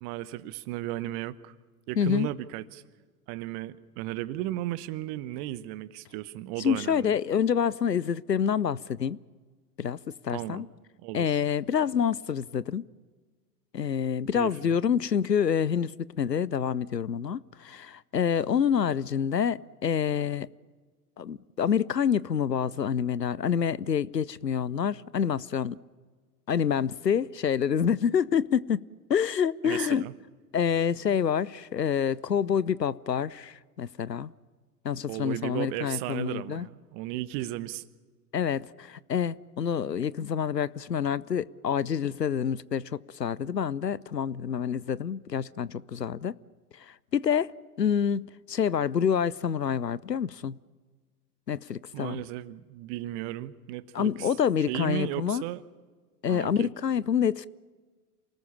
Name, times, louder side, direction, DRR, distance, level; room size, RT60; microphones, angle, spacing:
voice 1, 0.0-1.5 1.9-2.8 3.3-7.1 10.3-10.7 11.0-11.4 14.3-14.8 29.6-30.1 35.1-37.8 51.9-54.3 54.7-55.6 56.3-56.7, right 15 dB, 40° right, 1.0 m, -35 dB
voice 2, 2.0-2.3 6.6-9.2 9.8-10.0 10.2-10.7 11.1-12.8 13.7-15.9 16.2-20.5 21.2-25.8 26.5-28.8 29.1-30.0 30.5-34.3 34.8-36.7 38.3-46.4 46.9-47.5 47.8-50.6 51.5-52.2 53.9-55.4 56.2-57.5, left 7 dB, 90° left, 0.6 m, -27 dB
28.0 x 19.0 x 7.2 m
figure-of-eight pair, 90°, 48 cm